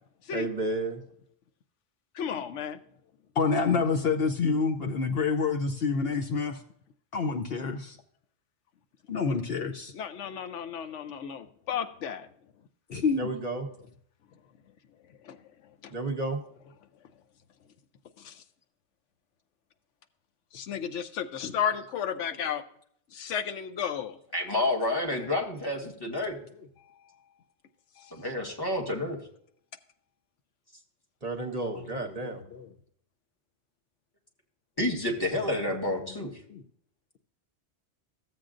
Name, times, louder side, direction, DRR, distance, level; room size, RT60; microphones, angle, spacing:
voice 1, 0.3-1.0 13.2-13.7 15.9-16.4 31.2-32.4, right 2 dB, 35° right, 5 dB, 0.9 m, -32 dB
voice 2, 2.2-2.8 9.9-12.3 15.2-15.4 15.8-15.9 18.2-18.3 20.5-22.6 23.1-24.2 28.0-28.1, left 8 dB, 85° left, 9 dB, 1.0 m, -33 dB
voice 3, 3.4-6.6 7.1-8.0 9.1-9.9 12.9-13.3 31.6-32.7 36.5-36.6, left 4 dB, 60° left, 4 dB, 0.9 m, -28 dB
voice 4, 24.3-26.4 28.1-29.2 34.8-36.3, left 1 dB, 20° left, 0 dB, 1.7 m, -29 dB
14.5 x 7.8 x 2.5 m, 0.66 s
omnidirectional pair, 1.2 m